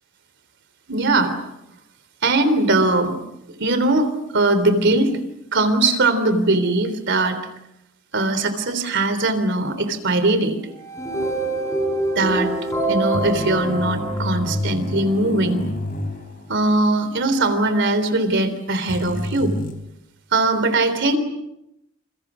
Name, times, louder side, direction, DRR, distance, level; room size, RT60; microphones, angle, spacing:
voice 1, 0.9-1.3 2.2-3.2 3.6-5.2 5.5-7.4 8.1-10.6 12.2-12.5 12.9-15.7 16.5-19.5 20.3-21.2, right 2 dB, 60° right, 11 dB, 3.6 m, -20 dB
sound 1, 10.7-15.0, right 2 dB, 15° left, 7.9 m, -26 dB
sound 2, 13.1-16.9 17.2-17.3 18.9-19.7, left 1 dB, 45° left, 4.9 m, -29 dB
29.0 x 28.5 x 6.3 m, 0.84 s
head